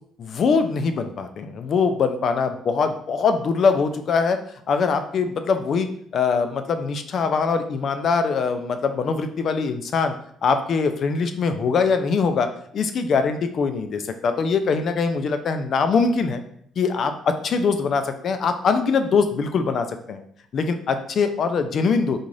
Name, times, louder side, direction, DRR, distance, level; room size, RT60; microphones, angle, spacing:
voice 1, 0.2-4.4 4.7-5.9 6.1-10.1 10.4-16.4 16.8-20.2 20.5-22.2, left 5 dB, 45° left, 8 dB, 0.4 m, -22 dB
3.9 x 2.4 x 3.1 m, 0.65 s
cardioid pair, 140°, 0 cm